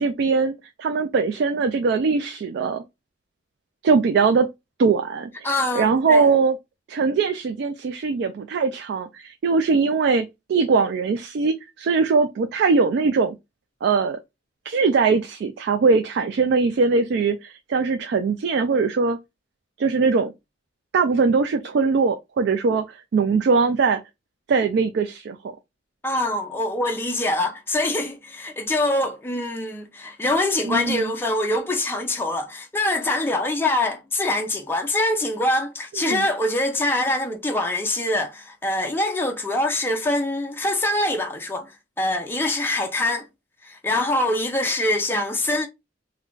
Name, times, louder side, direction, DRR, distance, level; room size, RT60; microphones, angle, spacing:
voice 1, 0.0-2.8 3.8-4.5 4.8-5.5 5.8-6.6 6.9-13.3 13.8-14.2 14.7-19.2 19.8-20.3 20.9-24.0 24.5-25.5 30.7-31.1 36.0-36.3, right 4 dB, 60° right, 0.3 m, -21 dB
voice 2, 5.4-6.2 26.0-41.7 42.0-43.3 43.6-45.7, left 1 dB, 10° left, 0.4 m, -24 dB
2.4 x 2.2 x 3.6 m
head